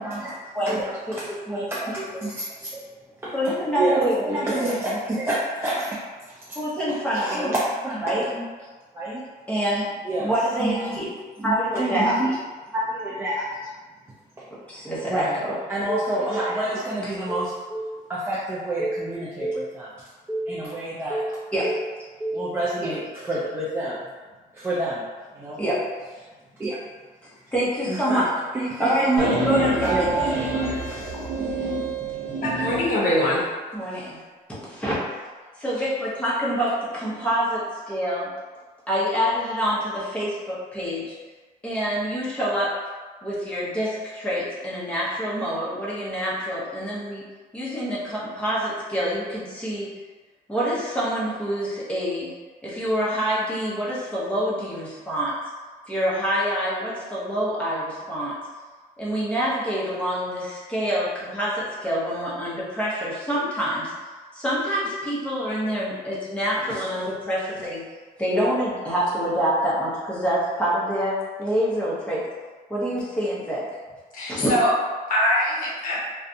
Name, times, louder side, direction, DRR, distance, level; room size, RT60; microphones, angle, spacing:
voice 1, 0.0-0.3 0.6-2.7 3.2-3.3 3.7-6.0 7.1-7.6 7.8-8.4 8.9-9.2 10.0-10.3 10.6-11.0 11.4-12.3 12.7-13.5 15.1-15.4 15.7-19.9 20.3-21.9 22.2-24.0 24.5-25.0 25.4-25.6 26.6-26.8 27.9-28.2 28.5-29.2 29.8-31.2, right 1 dB, 15° right, -8 dB, 0.4 m, -28 dB
voice 2, 1.5-2.0 3.3-4.7 6.5-7.5 8.0-8.3 9.5-9.9 10.2-11.1 11.4-12.1 14.5-15.5 21.5-21.7 25.6-25.8 27.5-28.3 28.8-30.6 33.7-34.2 34.5-35.0 35.6-38.3 38.9-41.1 41.6-42.7 43.2-47.2 47.5-49.9 50.5-52.3 52.6-55.3 55.9-58.3 59.0-63.9 64.3-67.8 68.2-72.2 72.7-73.7 74.3-74.5, equal, 5° left, -8 dB, 0.8 m, -26 dB
sound 1, 29.2-32.9, right 2 dB, 85° right, 0.7 m, -27 dB
voice 3, 32.4-33.4 74.1-74.7 75.1-76.0, left 1 dB, 55° left, -5 dB, 0.8 m, -22 dB
2.5 x 2.2 x 2.6 m, 1.4 s
cardioid pair, 110°, 17 cm